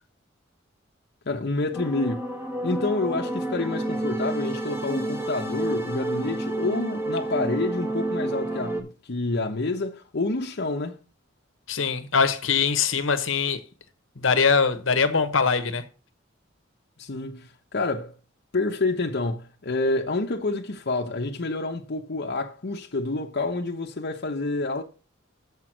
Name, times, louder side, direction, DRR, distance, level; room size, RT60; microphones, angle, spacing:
voice 1, 1.3-2.3 2.6-11.0 17.0-18.1 18.5-24.8, left 2 dB, 55° left, 0.9 m, -28 dB
sound 1, 1.7-8.8, right 1 dB, 15° right, 1.5 m, -29 dB
voice 2, 11.7-13.6 14.2-15.8, left 5 dB, 75° left, 1.1 m, -22 dB
7.4 x 6.0 x 6.1 m
head